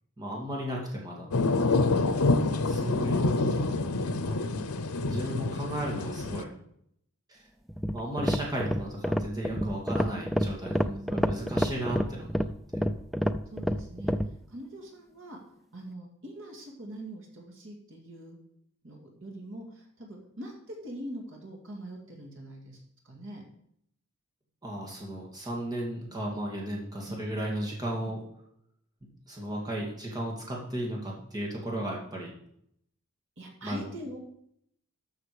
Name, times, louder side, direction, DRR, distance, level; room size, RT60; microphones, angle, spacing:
voice 1, 0.2-1.3 2.7-3.9 4.3-4.4 5.0-6.5 7.3-7.4 7.9-12.5 12.7-12.8 24.6-28.2 29.3-32.3 33.6-33.8, right 1 dB, 20° right, -3 dB, 2.5 m, -35 dB
sound 1, 1.3-6.4, left 3 dB, 85° left, 0.8 m, -27 dB
voice 2, 2.3-3.1 10.8-11.6 13.5-15.4 15.7-18.4 18.8-23.4 28.0-28.1 33.4-34.2, right 1 dB, 60° right, 1 dB, 2.4 m, -43 dB
sound 2, 7.7-14.3, equal, ahead, 0.4 m, -28 dB
13.0 x 6.6 x 5.0 m, 0.71 s
head